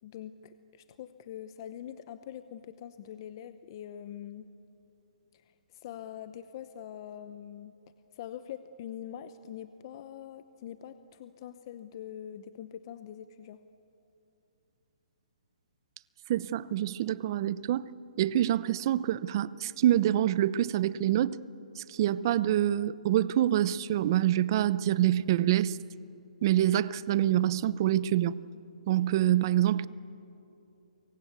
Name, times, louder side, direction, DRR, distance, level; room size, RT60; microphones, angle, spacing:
voice 1, 0.0-4.5 5.3-7.7 8.1-13.6, left 10 dB, 35° left, 0.8 m, -44 dB
voice 2, 16.3-17.9 18.2-21.4 21.8-25.8 26.4-28.3 28.9-29.9, right 12 dB, 35° right, 0.6 m, -26 dB
27.5 x 23.5 x 8.3 m
hypercardioid pair, 165°, 4 cm